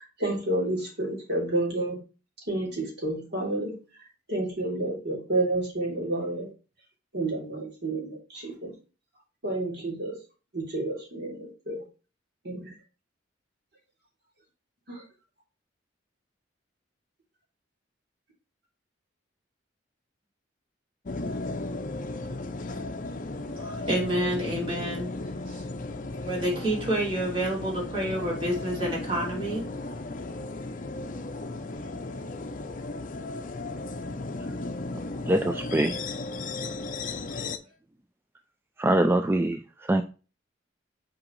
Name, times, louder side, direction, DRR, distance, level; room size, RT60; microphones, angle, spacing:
voice 1, 0.2-2.0 2.5-3.7 4.3-6.5 7.1-8.7 9.4-10.1 10.5-11.8 12.4-12.7 14.9-15.0, right 2 dB, 60° right, -3 dB, 3.3 m, -30 dB
sound 1, 21.1-37.6, left 2 dB, 45° left, 0.6 m, -35 dB
voice 2, 23.5-25.1 25.5-25.6 26.2-29.7, right 1 dB, 30° right, -4 dB, 2.8 m, -29 dB
voice 3, 35.3-35.9 38.8-39.6 39.9-40.0, right 1 dB, 10° right, 7 dB, 0.3 m, -23 dB
6.2 x 4.8 x 3.1 m, 0.33 s
head